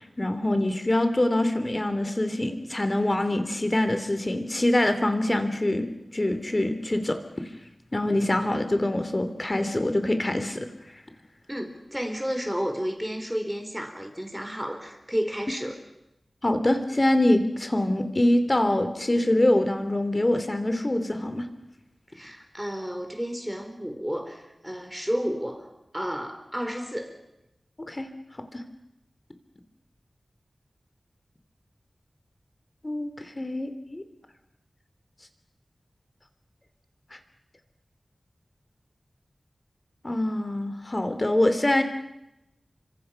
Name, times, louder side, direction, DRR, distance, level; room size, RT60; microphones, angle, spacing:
voice 1, 0.2-5.9 6.1-7.2 7.9-10.7 16.4-21.5 27.9-28.1 28.5-28.6 32.8-33.1 33.3-34.0 40.0-41.8, left 1 dB, 30° left, 8 dB, 2.9 m, -24 dB
voice 2, 11.5-15.8 22.1-25.7 25.9-27.2, equal, 5° right, 6 dB, 4.4 m, -31 dB
29.5 x 25.5 x 5.8 m, 0.89 s
wide cardioid pair, 75°, 0 cm